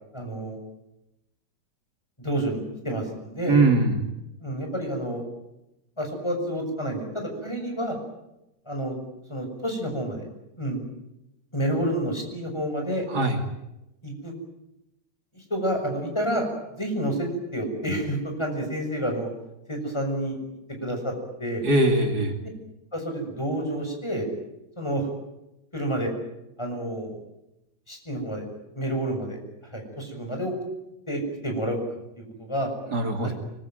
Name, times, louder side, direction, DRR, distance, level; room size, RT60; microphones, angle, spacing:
voice 1, 0.1-0.6 2.2-3.6 4.4-5.2 6.0-8.0 8.7-9.0 9.3-10.3 10.6-10.8 11.5-13.0 14.0-14.3 15.3-16.5 16.8-19.3 19.7-20.4 20.8-21.1 21.4-21.6 22.9-24.2 24.8-25.1 25.7-26.1 26.6-27.2 27.9-28.4 28.7-29.4 29.7-30.5 31.1-31.8 32.2-32.7 33.2-33.3, right 1 dB, 15° left, 3 dB, 6.6 m, -29 dB
voice 2, 3.5-4.0 13.1-13.4 21.6-22.3 32.9-33.3, right 2 dB, 60° right, 5 dB, 3.1 m, -21 dB
24.5 x 22.0 x 9.2 m, 0.89 s
omnidirectional pair, 1.9 m